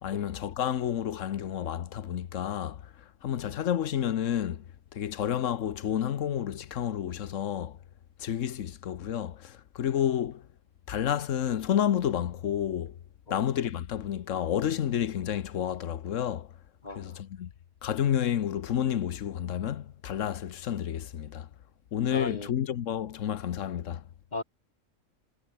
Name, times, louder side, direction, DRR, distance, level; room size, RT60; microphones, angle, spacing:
voice 1, 0.0-2.9 3.2-4.6 4.9-7.8 8.2-10.5 10.9-13.0 13.3-16.5 17.0-17.5 17.8-21.5 21.9-24.0, left 10 dB, 80° left, 1.2 m, -30 dB
voice 2, 16.8-17.2 22.1-22.5 24.3-24.4, left 2 dB, 35° left, 2.3 m, -37 dB
omnidirectional pair, 1.3 m